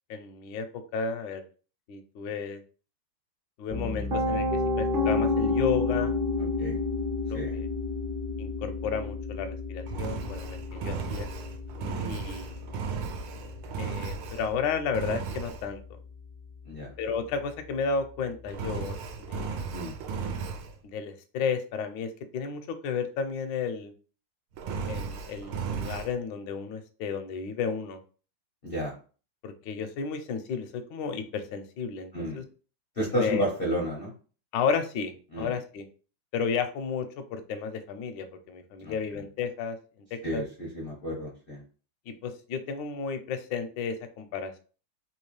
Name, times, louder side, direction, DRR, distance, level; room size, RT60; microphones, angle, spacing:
voice 1, 0.1-0.6 0.9-1.4 1.9-2.6 3.6-4.5 4.8-6.1 6.6-6.7 7.3-7.7 8.4-11.3 12.1-12.6 13.8-16.0 17.0-19.0 19.3-19.6 20.8-23.9 24.9-28.0 29.4-32.4 33.1-33.4 34.5-35.9 36.3-39.8 40.3-40.4 42.1-44.6, left 6 dB, 75° left, 7 dB, 1.1 m, -32 dB
Piano, 3.7-15.6, left 3 dB, 45° right, 0.7 m, -31 dB
voice 2, 6.4-6.8 7.3-7.6 11.8-12.1 16.6-16.9 19.7-20.0 28.6-28.9 32.1-32.4 33.0-34.1 35.3-35.6 38.8-39.2 40.2-41.6, equal, 60° left, -3 dB, 0.5 m, -32 dB
Engine, 9.9-14.6 14.9-15.7 18.5-20.7 24.5-26.1, right 5 dB, 85° right, 1.5 m, -35 dB
3.5 x 2.9 x 3.1 m, 0.38 s
omnidirectional pair, 2.3 m